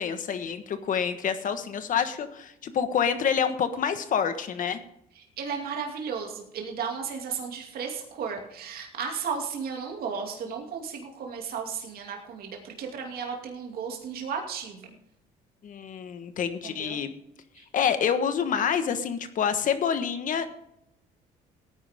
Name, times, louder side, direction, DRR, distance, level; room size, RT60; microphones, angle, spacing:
voice 1, 0.0-4.8 15.6-17.1 17.7-20.5, left 7 dB, 50° left, 9 dB, 1.4 m, -27 dB
voice 2, 5.2-14.9 16.6-17.0 17.6-17.7, right 6 dB, 65° right, 1 dB, 2.6 m, -34 dB
17.5 x 9.8 x 3.7 m, 0.78 s
cardioid pair, 110°, 17 cm